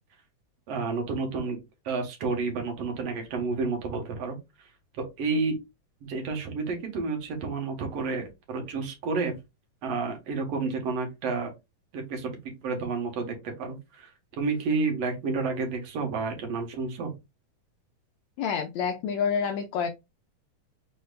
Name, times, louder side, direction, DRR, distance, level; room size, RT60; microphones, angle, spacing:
voice 1, 0.7-1.6 1.8-5.6 6.0-9.3 9.8-11.5 11.9-14.1 14.4-17.2, right 4 dB, 60° right, 2.1 m, -30 dB
voice 2, 18.4-19.9, left 6 dB, 90° left, 1.5 m, -28 dB
5.2 x 4.3 x 2.3 m
omnidirectional pair, 3.7 m